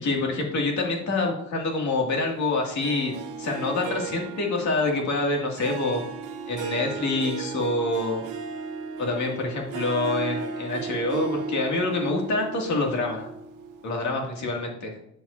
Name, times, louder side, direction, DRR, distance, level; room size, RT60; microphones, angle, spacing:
voice 1, 0.0-6.0 6.5-8.2 9.0-13.3 13.8-14.9, left 2 dB, 70° left, 0 dB, 2.4 m, -26 dB
Harp, 2.8-13.9, right 5 dB, 80° right, 1.0 m, -35 dB
9.8 x 7.4 x 2.7 m, 0.77 s
cardioid pair, 90°, 30 cm